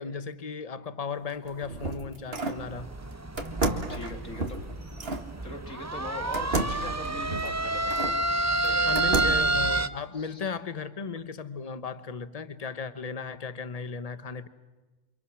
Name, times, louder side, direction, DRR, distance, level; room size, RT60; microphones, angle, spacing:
voice 1, 0.0-2.9 8.9-14.5, left 5 dB, 30° left, 1.2 m, -36 dB
sound 1, 1.3-2.7 3.4-5.3 6.3-8.2 8.6-9.6, right 2 dB, 50° right, 2.2 m, -32 dB
sound 2, 2.6-9.9, right 2 dB, 15° right, 0.7 m, -29 dB
voice 2, 3.6-4.6 5.4-8.2 8.6-9.4 10.1-10.5, left 2 dB, 85° left, 3.5 m, -41 dB
29.5 x 27.0 x 6.3 m
omnidirectional pair, 1.3 m